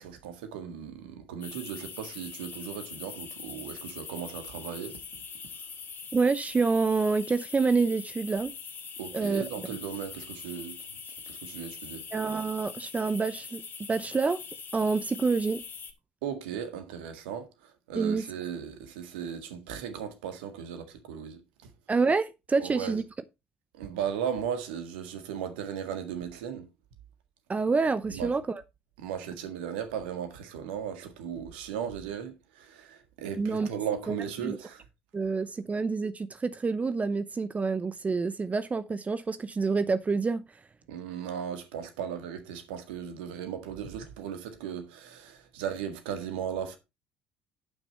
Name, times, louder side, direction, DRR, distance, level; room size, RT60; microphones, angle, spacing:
voice 1, 0.0-5.0 9.0-10.8 11.3-12.0 16.2-17.5 17.9-21.4 22.6-23.0 23.8-26.7 28.1-28.3 29.0-34.8 40.9-46.8, right 8 dB, 75° right, 1.8 m, -36 dB
sound 1, 1.4-15.9, left 6 dB, 40° left, 2.4 m, -43 dB
voice 2, 6.1-8.5 9.1-9.4 12.1-13.6 13.9-14.4 14.7-15.6 17.9-18.3 21.9-23.0 27.5-28.6 33.4-33.7 34.1-34.2 34.4-34.6 35.1-40.4, right 4 dB, 25° right, 0.7 m, -27 dB
11.0 x 6.1 x 4.4 m
hypercardioid pair, 55°, 6 cm